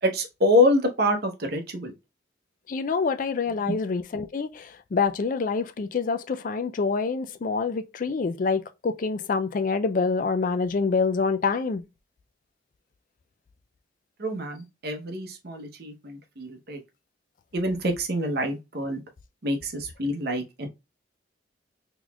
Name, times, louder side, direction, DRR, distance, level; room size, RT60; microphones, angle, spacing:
voice 1, 0.0-1.9 3.6-3.8 14.2-16.8 17.5-19.0 19.4-20.7, left 1 dB, 55° right, 0.9 m, -26 dB
voice 2, 2.7-11.8, left 4 dB, 45° left, 0.4 m, -26 dB
3.9 x 3.0 x 2.3 m
head